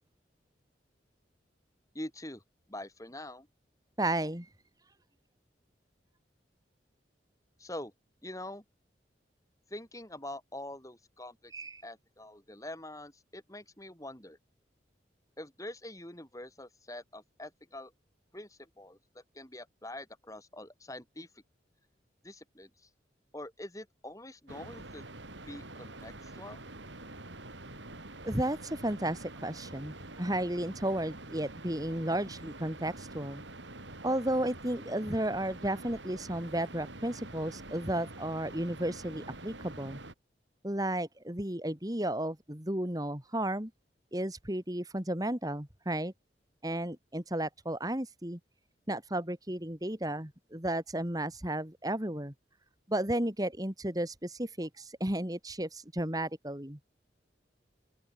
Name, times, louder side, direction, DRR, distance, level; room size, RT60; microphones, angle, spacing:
voice 1, 1.9-2.4 2.7-3.5 7.6-7.9 8.2-8.6 9.7-11.5 11.8-14.4 15.4-17.9 18.3-21.4 22.2-22.9 23.3-25.0 25.4-26.6, left 1 dB, 20° left, 7.6 m, -45 dB
voice 2, 4.0-4.5 11.5-11.8 28.2-33.4 34.0-40.0 40.6-43.7 44.1-46.1 46.6-48.4 48.9-52.3 52.9-56.8, right 1 dB, 20° right, 2.7 m, -33 dB
sound 1, 24.5-40.1, right 2 dB, 90° right, 5.5 m, -46 dB
open air
head